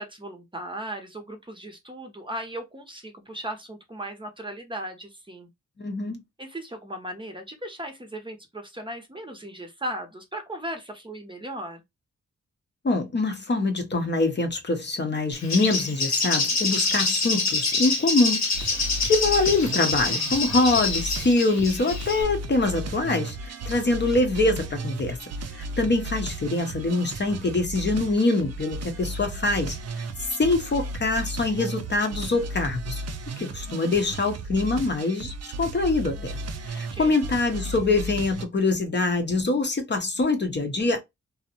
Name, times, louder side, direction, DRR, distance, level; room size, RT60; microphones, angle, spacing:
voice 1, 0.0-5.5 6.4-11.8 36.2-36.5 36.9-37.2, right 1 dB, 15° right, 0.7 m, -37 dB
voice 2, 5.8-6.2 12.8-25.2 25.5-30.0 30.4-33.0 33.4-36.4 36.6-41.0, left 3 dB, 35° left, 0.7 m, -24 dB
Bird, 15.3-22.2, left 3 dB, 65° left, 0.9 m, -26 dB
sound 1, 18.5-38.5, right 2 dB, 60° right, 0.5 m, -35 dB
2.5 x 2.0 x 2.7 m
cardioid pair, 65°, 29 cm